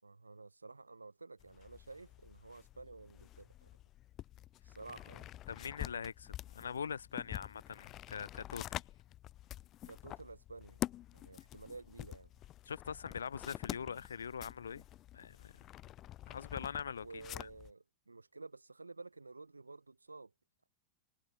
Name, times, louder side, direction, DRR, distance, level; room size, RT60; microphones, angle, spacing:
voice 1, 0.0-3.7 4.6-5.3 9.8-10.8 11.1-12.3 17.0-20.3, right 3 dB, 80° right, 4.7 m, -52 dB
sound 1, 1.4-17.7, left 14 dB, 35° left, 2.8 m, -47 dB
voice 2, 5.5-8.8 12.7-14.8 15.1-15.5 16.3-17.5, left 7 dB, 70° left, 1.1 m, -43 dB
figure-of-eight pair, 90°, 0 cm